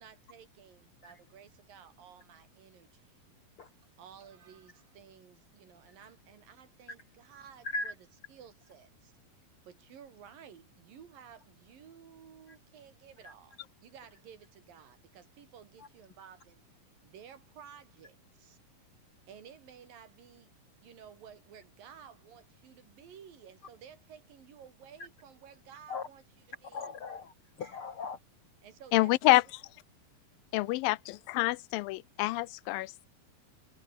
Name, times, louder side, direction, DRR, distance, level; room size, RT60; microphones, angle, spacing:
voice 1, 0.0-3.1 4.0-7.9 8.3-16.6 17.0-18.6 19.3-26.2 26.6-27.0 28.6-29.4 30.5-30.8, right 8 dB, 75° right, 4.5 m, -54 dB
voice 2, 26.7-28.2, left 3 dB, 60° left, 1.4 m, -38 dB
voice 3, 28.9-29.4 30.5-33.1, left 19 dB, 85° left, 2.4 m, -27 dB
omnidirectional pair, 4.0 m